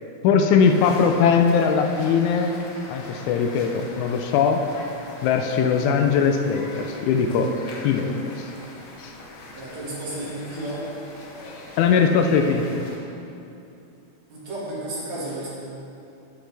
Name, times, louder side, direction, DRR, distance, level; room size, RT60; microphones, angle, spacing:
voice 1, 0.2-2.6 2.9-4.6 5.2-7.5 7.8-8.5 9.0-9.1 11.8-12.8, left 6 dB, 80° left, 4 dB, 1.9 m, -20 dB
sound 1, 0.6-13.0, left 2 dB, 60° left, 1.4 m, -41 dB
voice 2, 9.5-10.8 14.3-15.5, right 1 dB, 60° right, -8 dB, 3.3 m, -32 dB
9.2 x 8.8 x 3.4 m, 2.8 s
omnidirectional pair, 3.6 m